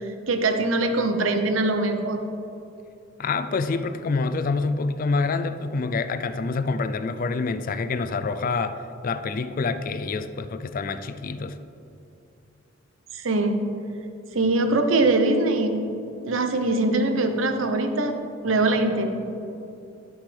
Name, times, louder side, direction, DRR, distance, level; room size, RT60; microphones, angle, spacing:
voice 1, 0.0-2.2 13.1-13.6 14.3-15.8 16.2-18.1 18.4-19.1, right 2 dB, 70° right, 6 dB, 0.8 m, -22 dB
voice 2, 3.2-8.8 9.0-11.6, left 4 dB, 45° left, 11 dB, 0.4 m, -27 dB
11.5 x 6.4 x 3.3 m, 2.7 s
head